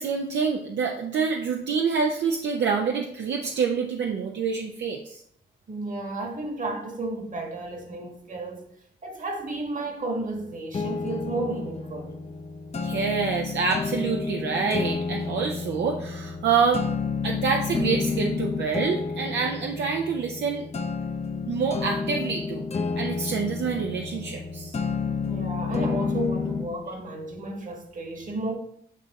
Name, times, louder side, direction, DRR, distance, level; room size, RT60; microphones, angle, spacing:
voice 1, 0.0-5.2 12.8-16.9 17.2-20.7 21.5-22.6 23.0-24.7, right 5 dB, 70° right, 0.7 m, -27 dB
voice 2, 5.7-8.7 9.0-12.1 25.2-28.6, right 2 dB, 45° right, 1.5 m, -32 dB
sound 1, 10.7-26.7, left 4 dB, 35° left, 0.6 m, -30 dB
8.4 x 2.9 x 4.1 m
cardioid pair, 80°, 19 cm